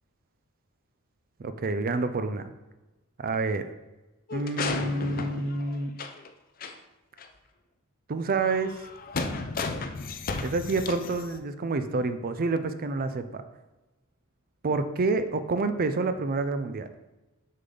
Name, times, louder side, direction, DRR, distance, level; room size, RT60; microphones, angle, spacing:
voice 1, 1.4-2.5 3.2-3.6 4.3-5.9 8.1-8.9 10.4-13.4 14.6-16.9, right 3 dB, 40° right, 10 dB, 0.4 m, -28 dB
sound 1, 4.3-6.3 6.6-6.7 7.2-7.3 8.4-11.4, left 3 dB, 40° left, 0.5 m, -34 dB
6.6 x 5.6 x 3.8 m, 1.1 s
head